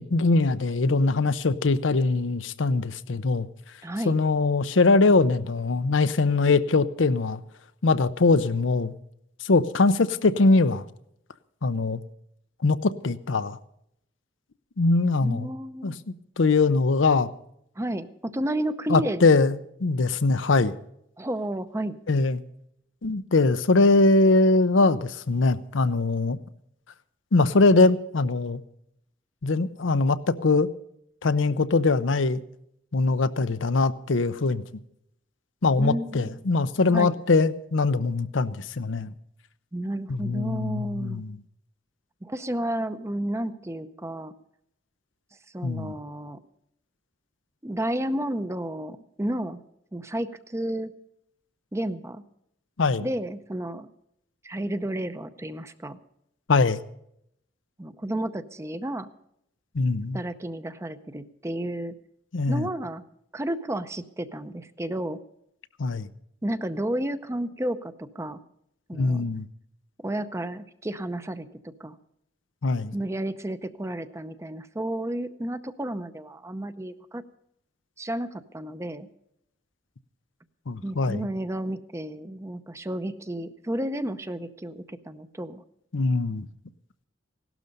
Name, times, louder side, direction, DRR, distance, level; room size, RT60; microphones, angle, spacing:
voice 1, 0.0-3.5 4.0-7.4 7.8-8.9 9.4-10.9 11.6-12.0 12.6-13.6 14.8-15.5 15.8-17.3 18.9-20.7 22.1-22.4 23.0-26.4 27.3-28.6 29.4-30.7 31.2-32.4 32.9-34.6 35.6-39.1 40.1-41.4 45.6-45.9 52.8-53.1 56.5-56.8 59.7-60.2 62.3-62.7 65.8-66.1 68.9-69.5 72.6-73.0 80.7-81.3 85.9-86.5, left 3 dB, 80° left, 13 dB, 0.7 m, -22 dB
voice 2, 3.8-4.2 15.2-16.0 17.8-19.3 21.2-22.0 35.8-36.3 36.9-37.2 39.7-41.2 42.2-44.3 45.5-46.4 47.6-49.6 49.9-50.9 51.7-52.2 53.0-53.9 54.4-56.0 57.8-59.1 60.1-61.9 62.5-63.0 63.3-65.2 66.4-68.4 68.9-69.3 70.0-71.9 72.9-77.2 78.0-79.1 80.8-85.6, right 1 dB, 15° right, 12 dB, 0.6 m, -31 dB
16.5 x 12.0 x 5.3 m, 0.74 s
head